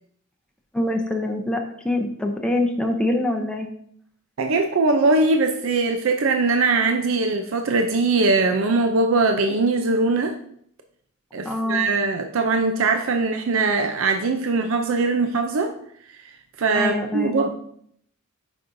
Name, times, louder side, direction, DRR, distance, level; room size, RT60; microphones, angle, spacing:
voice 1, 0.7-3.7 11.4-11.9 16.7-17.5, left 1 dB, 5° left, 2 dB, 0.6 m, -24 dB
voice 2, 4.4-10.4 11.3-15.7 16.6-17.5, right 3 dB, 70° right, 5 dB, 0.5 m, -21 dB
8.3 x 5.3 x 2.6 m, 0.67 s
head